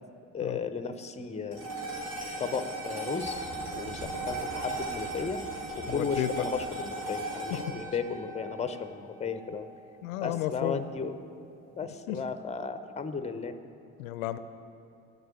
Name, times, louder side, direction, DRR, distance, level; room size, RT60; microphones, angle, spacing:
voice 1, 0.3-1.7 2.4-5.4 5.8-9.7 10.2-11.2 11.8-13.5, left 5 dB, 15° left, 10 dB, 0.7 m, -35 dB
sound 1, 1.5-10.0, right 2 dB, 85° right, 2.5 m, -37 dB
sound 2, 3.2-8.0, equal, 40° right, 2.1 m, -48 dB
voice 2, 5.9-6.5 7.5-7.7 10.0-10.9 12.1-12.2 14.0-14.4, left 13 dB, 75° left, 12 dB, 0.6 m, -32 dB
9.2 x 8.0 x 6.9 m, 2.8 s
hypercardioid pair, 55°, 42 cm